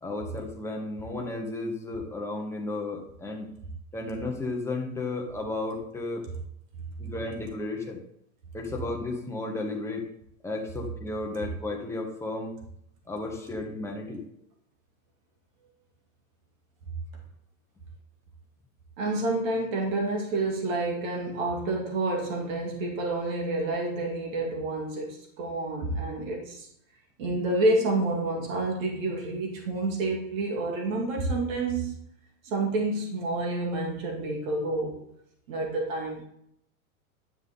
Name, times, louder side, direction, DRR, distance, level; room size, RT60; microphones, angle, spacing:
voice 1, 0.0-3.5 3.9-6.3 7.0-8.0 8.5-10.1 10.4-12.5 13.1-14.2, left 2 dB, 5° left, 1 dB, 1.1 m, -33 dB
voice 2, 19.0-26.7 27.2-31.9 32.4-35.0 35.5-36.3, right 2 dB, 65° right, 0 dB, 2.7 m, -29 dB
11.0 x 5.8 x 3.8 m, 0.73 s
supercardioid pair, 145°, 43 cm